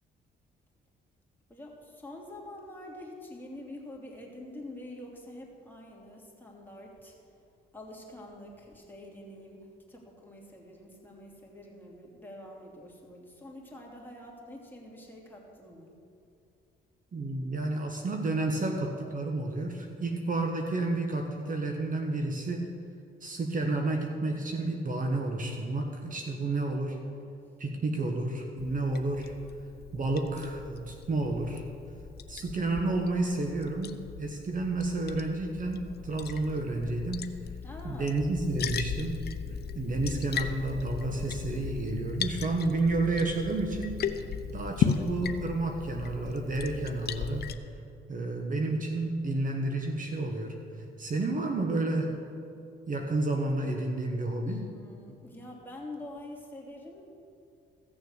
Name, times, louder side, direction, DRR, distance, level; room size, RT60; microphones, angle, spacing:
voice 1, 1.5-7.2 7.7-15.9 37.6-38.2 39.6-40.1 44.5-44.7 54.4-57.0, left 1 dB, 10° left, -2 dB, 2.8 m, -46 dB
voice 2, 17.1-22.8 23.2-27.0 27.6-29.3 29.9-31.6 32.3-37.3 37.8-39.3 39.7-44.2 44.5-47.5 48.1-50.6 51.0-52.1 52.9-54.7, right 2 dB, 45° right, 3 dB, 1.3 m, -31 dB
Liquid, 28.6-47.5, left 7 dB, 55° left, 0.7 m, -37 dB
15.5 x 6.9 x 6.5 m, 2.5 s
cardioid pair, 90°, 20 cm